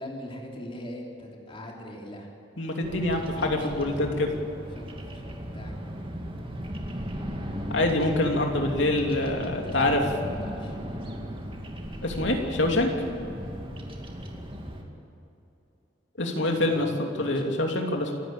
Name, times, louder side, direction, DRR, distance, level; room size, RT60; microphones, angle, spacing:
voice 1, 0.0-2.3 3.0-4.1 4.7-5.7 8.7-9.2 9.5-10.7 16.7-17.5, equal, 30° left, -1 dB, 3.2 m, -42 dB
voice 2, 2.6-4.3 7.7-10.0 12.0-12.9 16.2-18.1, left 2 dB, 70° left, 2 dB, 2.9 m, -25 dB
Bird vocalization bird call bird song, 2.8-14.8, equal, 25° right, 2.3 m, -37 dB
27.0 x 12.5 x 8.9 m, 2.8 s
head